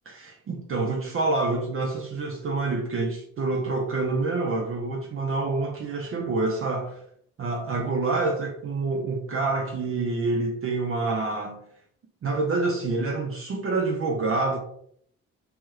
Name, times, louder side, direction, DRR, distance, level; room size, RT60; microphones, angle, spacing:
voice 1, 0.1-7.0 7.4-11.6 12.2-14.6, right 3 dB, 40° right, 0.6 m, -27 dB
2.9 x 2.3 x 3.2 m
supercardioid pair, 55°, 32 cm